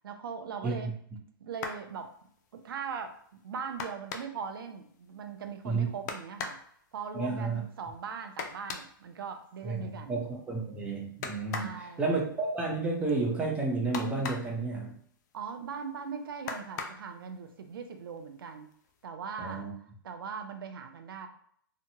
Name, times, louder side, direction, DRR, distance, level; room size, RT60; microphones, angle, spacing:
voice 1, 0.0-0.9 1.4-2.1 2.5-6.6 6.9-10.2 11.5-12.2 15.3-18.7 19.0-21.3, right 6 dB, 80° right, 6 dB, 0.5 m, -40 dB
sound 1, 1.5-1.9 3.8-4.5 6.1-6.7 8.4-8.9 11.2-11.8 13.9-14.6 16.5-17.1 18.2-18.3 18.7-18.9, left 5 dB, 50° left, 0.4 m, -38 dB
voice 2, 7.1-7.6 9.6-15.0 19.4-19.7, right 3 dB, 10° right, -1 dB, 0.6 m, -31 dB
2.8 x 2.1 x 2.8 m, 0.62 s
hypercardioid pair, 140°, 12 cm